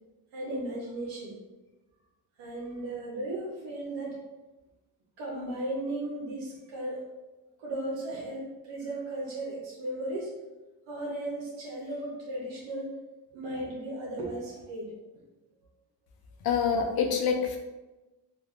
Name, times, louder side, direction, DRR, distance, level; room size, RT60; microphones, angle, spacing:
voice 1, 0.3-1.4 2.4-4.2 5.2-7.0 7.6-10.3 10.9-13.0 13.3-14.9, right 1 dB, 90° right, -5 dB, 0.8 m, -36 dB
voice 2, 16.4-17.6, left 6 dB, 60° left, 3 dB, 0.6 m, -26 dB
3.4 x 2.4 x 2.4 m, 1.1 s
cardioid pair, 70°, 42 cm